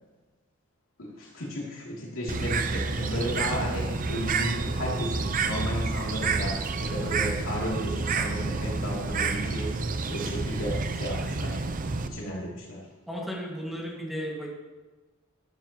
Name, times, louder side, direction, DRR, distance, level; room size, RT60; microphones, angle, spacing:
voice 1, 1.0-9.7 10.0-11.6 12.0-12.8, equal, 90° left, -5 dB, 2.7 m, -33 dB
Bird, 2.3-12.1, right 4 dB, 40° right, 0.6 m, -29 dB
voice 2, 13.1-14.5, equal, ahead, -3 dB, 1.8 m, -34 dB
12.0 x 12.0 x 3.0 m, 1.2 s
head